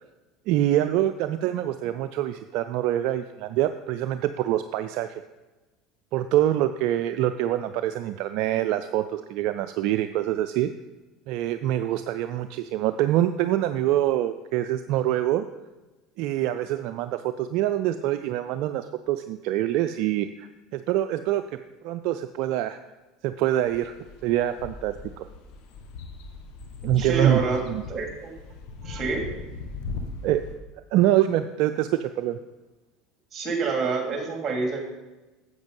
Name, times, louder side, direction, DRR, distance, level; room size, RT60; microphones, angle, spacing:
voice 1, 0.5-5.2 6.1-10.7 11.3-15.4 16.2-21.4 21.8-22.8 23.2-23.9 24.2-25.3 26.8-27.8 30.2-30.4 30.9-32.4, right 13 dB, 65° right, 10 dB, 0.4 m, -25 dB
sound 1, 23.6-30.6, left 3 dB, 70° left, 1.4 m, -39 dB
voice 2, 27.0-27.6 27.9-28.3 28.8-29.2 33.3-34.9, right 4 dB, 35° right, 2 dB, 2.8 m, -27 dB
8.0 x 7.8 x 5.4 m, 1.1 s
hypercardioid pair, 85°, 0 cm